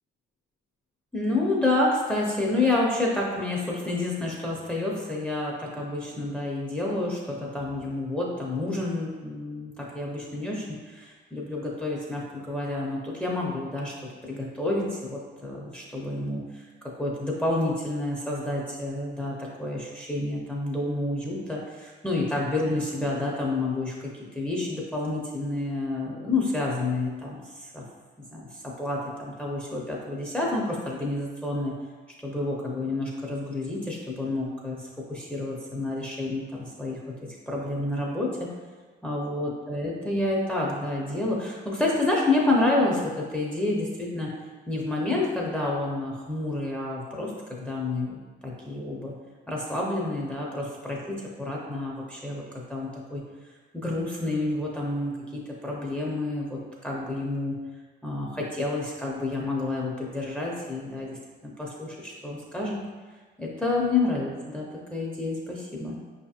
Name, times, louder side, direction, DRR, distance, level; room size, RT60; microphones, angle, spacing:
voice 1, 1.1-13.9 14.2-16.6 17.0-27.8 28.3-31.7 32.2-34.8 35.1-37.0 37.5-38.5 39.0-44.3 44.7-49.1 49.5-53.2 53.7-57.6 58.0-61.2 61.4-62.8 63.4-66.0, left 2 dB, 5° left, -4 dB, 0.7 m, -29 dB
5.0 x 2.7 x 2.4 m, 1.4 s
cardioid pair, 90°, 20 cm